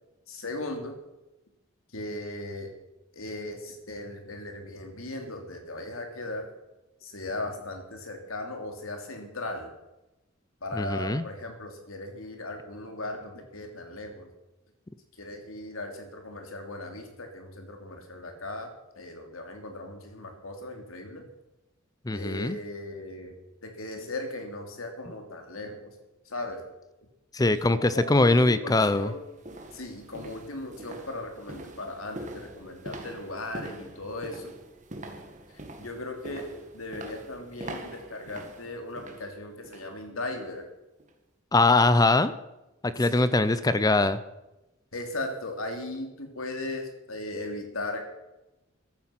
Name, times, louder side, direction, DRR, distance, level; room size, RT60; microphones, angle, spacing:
voice 1, 0.3-1.0 1.9-2.7 3.1-6.5 7.0-9.7 10.6-14.3 15.2-21.2 22.1-23.3 23.6-25.9 26.3-26.6 27.7-29.2 29.7-34.5 35.8-36.5 36.7-40.6 43.0-43.2 44.9-48.0, left 2 dB, 90° left, 4 dB, 3.0 m, -37 dB
voice 2, 10.7-11.2 22.1-22.6 27.3-29.1 41.5-42.3 42.8-44.2, left 2 dB, 20° left, 14 dB, 0.5 m, -22 dB
sound 1, 28.0-28.1 28.7-39.9 40.3-40.6 41.0-41.1, right 1 dB, 35° right, 1.9 m, -44 dB
14.5 x 12.0 x 5.9 m, 0.98 s
head